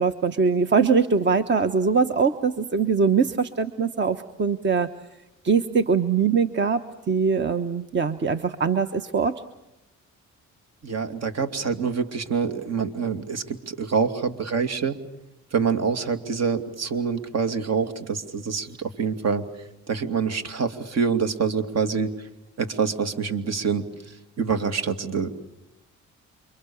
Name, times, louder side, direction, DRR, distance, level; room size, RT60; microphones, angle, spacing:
voice 1, 0.0-4.9 5.4-9.3, right 5 dB, 40° right, 9 dB, 1.2 m, -22 dB
voice 2, 10.8-14.9 15.5-22.3 22.6-25.3, right 6 dB, 55° right, 8 dB, 2.6 m, -26 dB
28.5 x 24.5 x 7.2 m, 0.92 s
cardioid pair, 90°, 30 cm